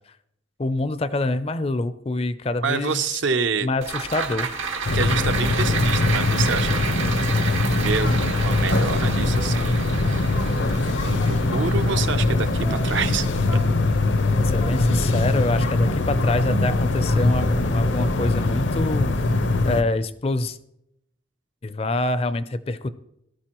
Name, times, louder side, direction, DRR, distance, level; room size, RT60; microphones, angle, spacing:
voice 1, 0.6-3.2 3.6-4.5 14.4-19.3 19.6-20.6 21.6-22.9, left 2 dB, 30° left, 13 dB, 0.4 m, -26 dB
voice 2, 2.6-3.7 4.9-6.8 7.7-10.4 10.9-13.6, right 5 dB, 70° right, 10 dB, 0.6 m, -28 dB
sound 1, 3.8-14.3 14.7-14.8, right 5 dB, 90° right, 1.6 m, -31 dB
sound 2, 4.9-19.8, left 2 dB, 70° left, 0.7 m, -22 dB
sound 3, 8.0-19.0, left 2 dB, 90° left, 1.8 m, -35 dB
18.0 x 12.5 x 3.0 m, 0.80 s
head